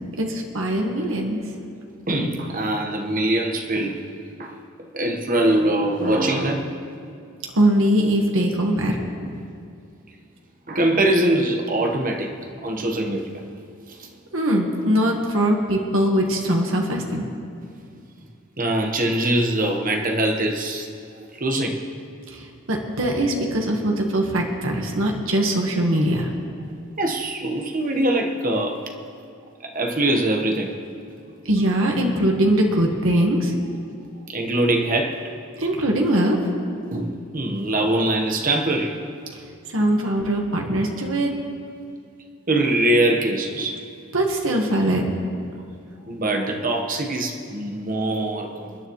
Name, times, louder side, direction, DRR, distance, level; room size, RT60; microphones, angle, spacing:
voice 1, 0.2-1.4 7.5-9.0 14.3-17.3 22.3-22.4 22.7-26.3 31.4-33.5 35.6-36.4 39.7-41.3 44.1-45.0, right 1 dB, 75° right, 1 dB, 1.5 m, -21 dB
voice 2, 2.1-4.1 4.4-4.6 4.9-6.8 9.2-9.4 10.7-12.3 12.6-13.4 13.9-14.1 18.6-20.9 21.4-21.8 27.0-28.8 29.6-30.8 34.3-35.2 36.9-39.0 39.8-39.9 42.5-43.8 46.1-48.8, right 1 dB, 40° right, 3 dB, 1.3 m, -23 dB
29.0 x 9.7 x 3.2 m, 2.4 s
head